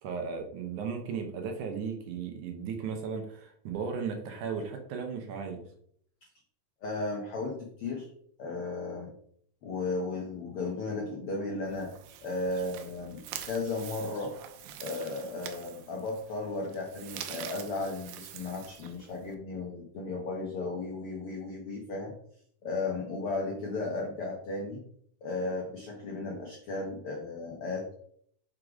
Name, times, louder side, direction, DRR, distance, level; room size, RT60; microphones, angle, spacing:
voice 1, 0.0-5.6, right 6 dB, 70° right, 4 dB, 2.2 m, -36 dB
voice 2, 6.8-8.1 8.4-9.1 9.6-11.9 12.2-14.4 14.8-22.1 22.6-24.8 25.2-27.9, left 3 dB, 80° left, 0 dB, 1.2 m, -35 dB
sound 1, 11.6-19.4, right 10 dB, 90° right, 2.4 m, -45 dB
6.4 x 3.7 x 4.9 m, 0.64 s
omnidirectional pair, 4.0 m